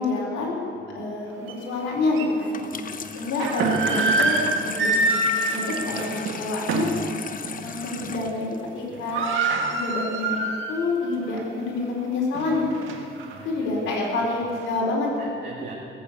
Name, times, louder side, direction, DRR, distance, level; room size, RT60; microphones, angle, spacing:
voice 1, 0.0-2.6 3.1-4.9 5.5-6.1 6.4-7.0 7.6-8.5 8.7-9.3 9.7-12.7 13.4-15.3, left 3 dB, 85° left, -2 dB, 4.4 m, -27 dB
sound 1, 1.5-1.6 2.1-2.3 3.2-7.0 7.4-7.6 8.0-8.4 8.6-8.7 8.9-10.9 11.3-11.4 12.0-13.3, right 2 dB, 75° right, 1.7 m, -25 dB
Water tap faucet / Sink (filling or washing), 2.4-9.5, left 6 dB, 45° left, 0.9 m, -36 dB
voice 2, 2.7-3.1 5.8-6.1 13.3-14.0 14.2-14.5 15.2-15.7, right 4 dB, 50° right, -5 dB, 2.7 m, -41 dB
18.5 x 8.6 x 8.2 m, 2.8 s
cardioid pair, 90°, 20 cm